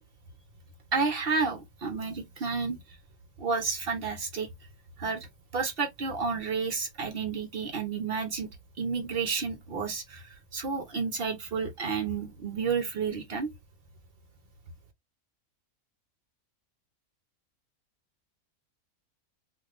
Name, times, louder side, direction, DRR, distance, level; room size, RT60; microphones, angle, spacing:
voice 1, 0.9-2.8 3.4-4.5 5.0-5.3 5.5-8.5 8.8-13.5, right 5 dB, 55° right, 0.7 m, -31 dB
3.2 x 2.4 x 2.5 m
omnidirectional pair, 1.5 m